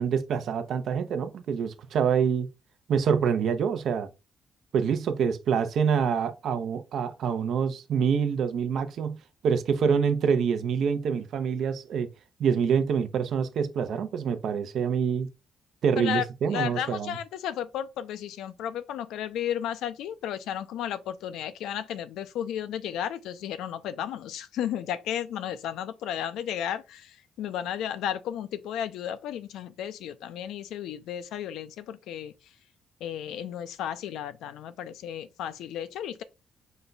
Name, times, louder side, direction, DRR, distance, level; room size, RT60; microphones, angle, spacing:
voice 1, 0.0-2.5 2.9-4.1 4.7-9.2 9.4-12.1 12.4-15.3 15.8-17.1, right 7 dB, 70° right, 0.6 m, -26 dB
voice 2, 16.5-32.3 33.0-36.2, left 10 dB, 85° left, 0.5 m, -33 dB
5.1 x 2.3 x 3.9 m
cardioid pair, 90°, 0 cm